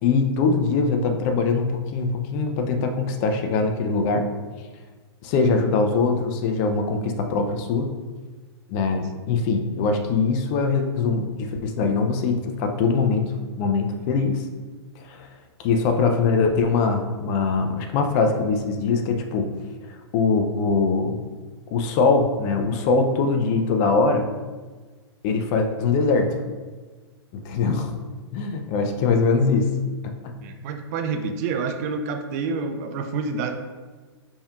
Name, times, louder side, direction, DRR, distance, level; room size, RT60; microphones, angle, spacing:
voice 1, 0.0-4.3 5.2-7.9 8.7-13.3 13.6-14.4 15.0-15.3 15.6-19.5 19.9-21.2 21.7-24.3 25.2-26.4 27.3-27.9 28.3-29.7 30.2-30.3, left 4 dB, 35° left, 5 dB, 0.4 m, -22 dB
voice 2, 30.4-33.5, right 4 dB, 35° right, 6 dB, 0.4 m, -28 dB
4.3 x 3.5 x 2.3 m, 1.3 s
hypercardioid pair, 135°, 14 cm